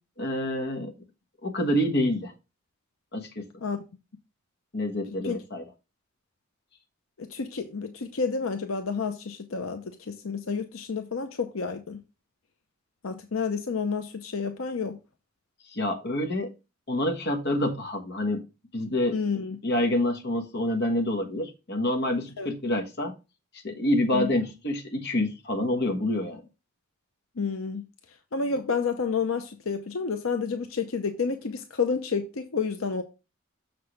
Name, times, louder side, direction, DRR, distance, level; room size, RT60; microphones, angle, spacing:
voice 1, 0.2-0.9 1.4-2.3 3.1-3.4 4.7-5.6 15.7-16.5 16.9-18.4 18.7-19.2 19.6-23.1 23.6-26.4, left 1 dB, 55° left, 1.4 m, -27 dB
voice 2, 7.2-12.0 13.0-15.0 19.1-19.6 22.4-22.5 24.1-24.3 27.4-27.9 28.3-33.0, left 5 dB, 85° left, 0.7 m, -30 dB
6.6 x 6.1 x 3.2 m
head